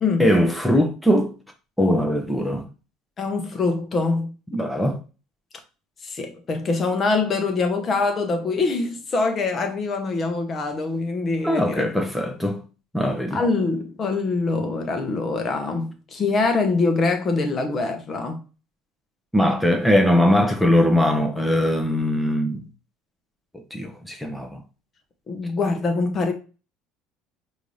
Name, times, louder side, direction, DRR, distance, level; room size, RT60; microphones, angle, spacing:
voice 1, 0.2-1.3 1.8-2.6 4.5-5.0 11.4-12.6 12.9-13.4 19.3-22.7 23.7-24.6, equal, ahead, 0.9 m, -20 dB
voice 2, 3.2-4.3 6.0-11.9 13.3-18.4 25.3-26.3, left 3 dB, 35° left, 0.9 m, -24 dB
4.9 x 2.8 x 3.1 m
figure-of-eight pair, 65°, 0 cm